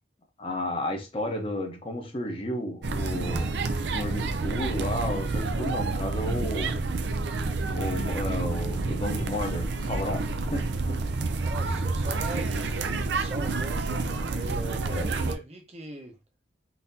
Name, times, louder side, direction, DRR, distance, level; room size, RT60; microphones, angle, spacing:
voice 1, 0.4-6.8 7.7-11.0 14.9-15.1, left 1 dB, 30° left, 0.8 m, -32 dB
voice 2, 1.1-1.5 11.4-16.2, right 1 dB, 35° right, 0.8 m, -41 dB
sound 1, 2.8-15.4, right 3 dB, 70° right, 0.4 m, -29 dB
3.9 x 2.8 x 2.6 m
head